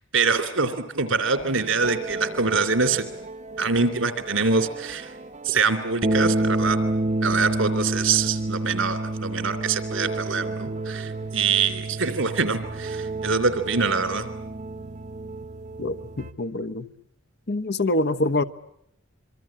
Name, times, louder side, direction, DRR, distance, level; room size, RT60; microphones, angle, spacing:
voice 1, 0.1-3.0 3.6-5.1 5.4-6.8 7.2-14.3, right 4 dB, 90° right, 11 dB, 3.1 m, -24 dB
sound 1, 1.4-16.3, right 2 dB, 40° right, 1.1 m, -29 dB
voice 2, 15.8-16.9 17.5-18.4, left 2 dB, 60° left, 10 dB, 1.1 m, -25 dB
26.0 x 24.0 x 8.7 m, 0.76 s
head